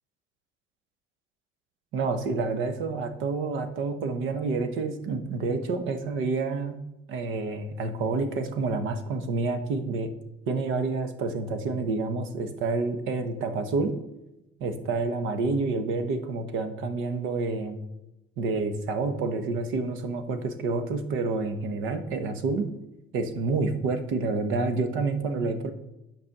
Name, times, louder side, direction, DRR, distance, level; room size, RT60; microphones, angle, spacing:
voice 1, 1.9-6.8 7.1-10.1 10.5-13.9 14.6-17.8 18.4-22.7 23.1-25.7, right 3 dB, 70° right, 8 dB, 1.1 m, -28 dB
8.7 x 5.3 x 6.6 m, 0.94 s
cardioid pair, 175°, 21 cm